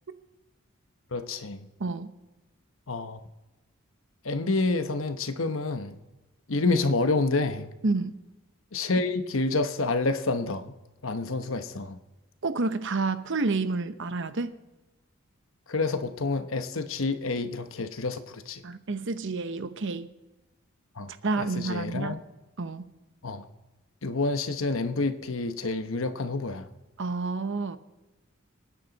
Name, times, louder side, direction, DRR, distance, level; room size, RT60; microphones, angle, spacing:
voice 1, 1.1-1.7 2.9-3.2 4.2-6.0 6.5-7.7 8.7-10.7 11.0-12.0 15.7-18.6 21.0-21.1 21.4-22.2 23.2-23.5 24.0-26.7, left 3 dB, 65° left, 9 dB, 1.0 m, -28 dB
voice 2, 1.8-2.1 7.8-8.1 12.4-14.5 18.6-20.1 21.2-22.2 22.6-22.8 27.0-27.8, right 3 dB, 60° right, 12 dB, 0.8 m, -29 dB
26.5 x 9.8 x 4.0 m, 1.1 s
head